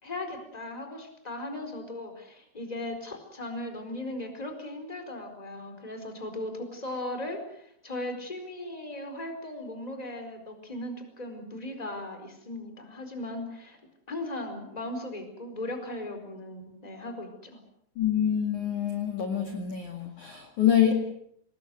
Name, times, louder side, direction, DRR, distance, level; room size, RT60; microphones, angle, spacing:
voice 1, 0.0-13.8 14.1-17.6, left 1 dB, 10° left, 6 dB, 4.0 m, -37 dB
voice 2, 18.0-20.9, left 9 dB, 50° left, 4 dB, 2.9 m, -26 dB
26.0 x 20.0 x 7.8 m, 0.70 s
omnidirectional pair, 5.5 m